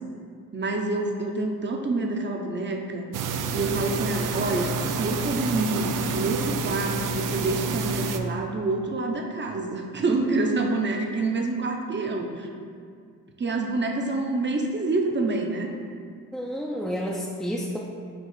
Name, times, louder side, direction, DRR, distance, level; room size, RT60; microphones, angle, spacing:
voice 1, 0.5-3.1 3.5-12.5 13.4-15.7, right 2 dB, 30° right, 2 dB, 0.9 m, -27 dB
sound 1, 3.1-8.2, right 4 dB, 60° right, 0.5 m, -28 dB
voice 2, 16.3-17.8, equal, ahead, -4 dB, 0.6 m, -30 dB
7.0 x 2.4 x 5.6 m, 2.2 s
supercardioid pair, 60°, 37 cm